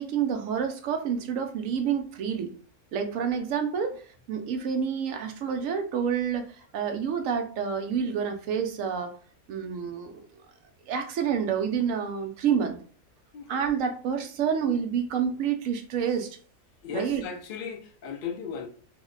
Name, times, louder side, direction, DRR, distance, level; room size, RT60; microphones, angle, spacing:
voice 1, 0.0-2.5 2.9-9.2 9.5-10.2 10.9-12.8 13.5-16.4 16.9-17.3, right 7 dB, 70° right, 0.9 m, -28 dB
voice 2, 16.8-18.7, left 7 dB, 70° left, 0.5 m, -36 dB
2.7 x 2.1 x 3.7 m
omnidirectional pair, 1.5 m